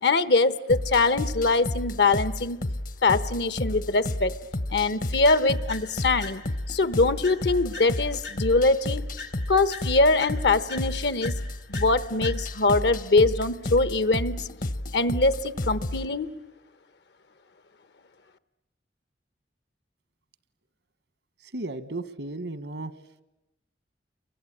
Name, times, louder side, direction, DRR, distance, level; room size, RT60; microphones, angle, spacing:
voice 1, 0.0-2.6 3.0-4.3 4.7-6.4 6.7-9.0 9.5-11.3 11.7-14.5 14.9-16.3, left 3 dB, 75° left, 15 dB, 1.1 m, -23 dB
sound 1, 0.7-16.1, left 1 dB, 50° left, 0.9 m, -32 dB
sound 2, 5.3-6.7 7.2-8.8 9.2-12.8, left 4 dB, 90° left, 3.4 m, -43 dB
voice 2, 21.5-22.9, right 2 dB, 85° right, 15 dB, 1.3 m, -34 dB
29.0 x 23.5 x 8.7 m, 0.94 s
head